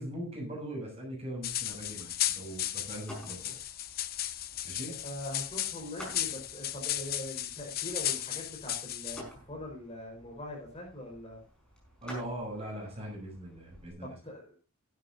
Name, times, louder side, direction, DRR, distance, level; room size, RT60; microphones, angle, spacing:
voice 1, 0.0-3.6 4.6-5.0 12.0-14.2, right 1 dB, 30° right, -1 dB, 6.9 m, -40 dB
sound 1, 1.4-9.2, left 12 dB, 45° left, 0.7 m, -35 dB
sound 2, 1.4-13.9, equal, 5° left, 5.0 m, -52 dB
voice 2, 4.9-11.4 14.0-14.5, left 1 dB, 30° left, 0 dB, 5.2 m, -42 dB
15.5 x 12.0 x 2.7 m, 0.32 s
head